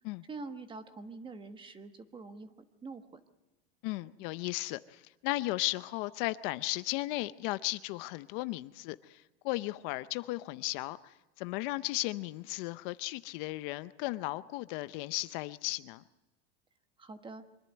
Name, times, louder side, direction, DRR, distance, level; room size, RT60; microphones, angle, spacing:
voice 1, 0.3-2.5 2.8-3.2 17.0-17.4, right 3 dB, 15° right, 9 dB, 1.2 m, -45 dB
voice 2, 3.8-9.2 9.4-11.1 11.4-16.0, left 19 dB, 55° left, 14 dB, 0.7 m, -35 dB
24.5 x 11.0 x 9.6 m, 1.1 s
supercardioid pair, 140°, 32 cm